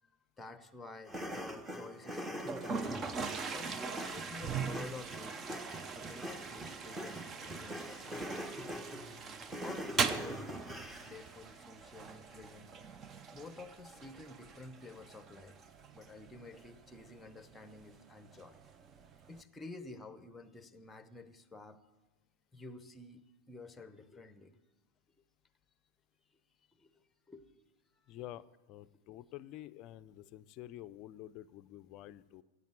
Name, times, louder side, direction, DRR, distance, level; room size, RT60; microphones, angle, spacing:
voice 1, 0.4-2.9 3.5-5.4 5.9-8.8 9.6-10.7 11.0-12.8 13.3-15.6 15.9-18.6 19.3-21.8 22.5-24.6 26.8-27.5 30.2-30.3, left 3 dB, 10° left, 13 dB, 0.9 m, -51 dB
sound 1, 1.1-11.3, equal, 10° right, 1.2 m, -44 dB
Toilet flush, 2.4-19.4, right 5 dB, 25° right, 0.7 m, -42 dB
voice 2, 28.1-32.4, left 14 dB, 40° left, 14 dB, 0.5 m, -49 dB
16.0 x 8.3 x 9.3 m, 1.2 s
figure-of-eight pair, 90°, 0 cm